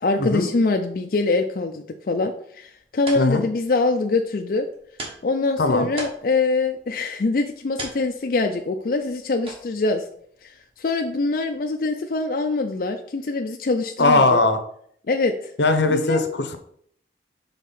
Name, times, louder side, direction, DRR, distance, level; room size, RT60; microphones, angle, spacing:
voice 1, 0.0-4.7 5.2-10.0 10.4-14.4 15.1-15.5 15.9-16.3, left 3 dB, 50° left, 4 dB, 0.4 m, -24 dB
sound 1, 2.6-11.9, right 2 dB, 30° right, 1.4 m, -42 dB
voice 2, 5.6-5.9 14.0-14.6 15.6-16.6, left 2 dB, 80° left, 9 dB, 0.8 m, -19 dB
5.5 x 3.6 x 5.8 m, 0.66 s
head